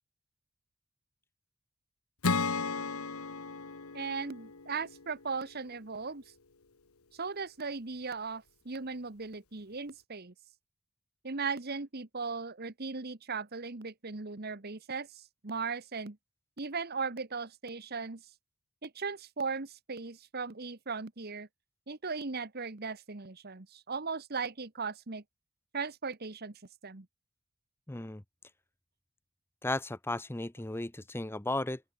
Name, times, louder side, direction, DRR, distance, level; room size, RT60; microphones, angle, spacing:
Acoustic guitar / Strum, 2.2-5.7, left 4 dB, 85° left, 1.5 m, -35 dB
voice 1, 3.9-6.2 7.1-10.3 11.2-16.2 16.6-18.2 18.8-21.5 21.9-25.2 25.7-27.1, right 4 dB, 45° right, 1.3 m, -38 dB
voice 2, 27.9-28.2 29.6-31.8, left 2 dB, 10° left, 0.7 m, -35 dB
open air
head